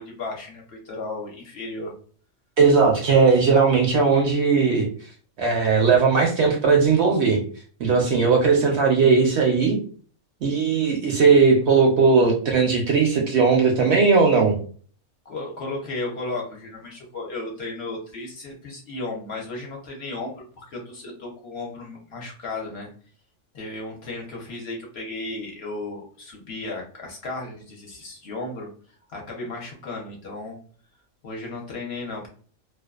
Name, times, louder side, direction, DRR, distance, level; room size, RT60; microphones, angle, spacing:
voice 1, 0.0-1.9 15.2-22.9 23.5-30.6 31.2-32.3, left 2 dB, 55° left, -1 dB, 0.8 m, -34 dB
voice 2, 2.6-4.9 5.4-7.4 7.8-9.8 10.4-14.5, right 5 dB, 65° right, 1 dB, 0.7 m, -18 dB
2.5 x 2.2 x 2.3 m, 0.44 s
omnidirectional pair, 1.4 m